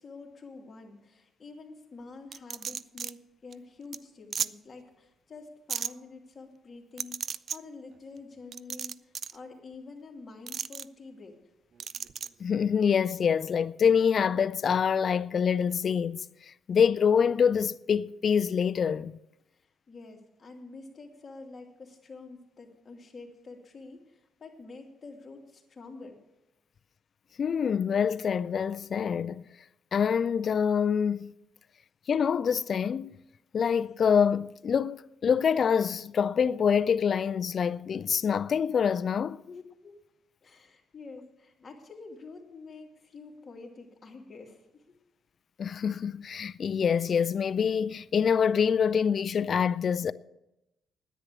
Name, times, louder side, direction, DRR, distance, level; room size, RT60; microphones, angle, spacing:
voice 1, 0.0-11.4 19.5-26.2 39.5-40.0 40.4-45.0, left 3 dB, 35° left, 2.6 m, -47 dB
sound 1, 2.3-3.1 3.5-3.6 3.9-4.0 4.3-4.5 5.7-5.9 7.0-7.6 8.5-9.4 10.5-10.8 11.8-12.3, right 7 dB, 55° right, 0.3 m, -34 dB
voice 2, 12.4-16.2 16.7-19.2 27.4-29.5 29.9-31.3 32.1-33.1 33.5-39.4 45.6-50.1, left 7 dB, 50° left, 0.4 m, -26 dB
10.0 x 9.5 x 7.3 m
cardioid pair, 90°, 0 cm